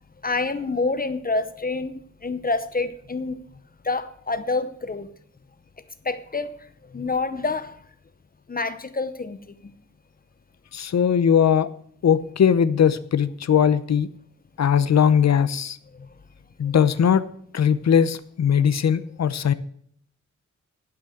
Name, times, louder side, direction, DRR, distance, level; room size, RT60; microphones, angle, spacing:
voice 1, 0.2-3.5 3.8-5.1 6.0-6.5 6.9-7.8 8.5-9.7 15.9-16.1 16.6-16.7, left 3 dB, 30° left, 12 dB, 0.8 m, -27 dB
voice 2, 10.7-11.7 12.0-14.1 14.6-15.8 16.6-17.2 17.5-19.5, left 8 dB, 60° left, 15 dB, 0.7 m, -19 dB
11.5 x 6.1 x 7.8 m, 0.63 s
wide cardioid pair, 120°, 30 cm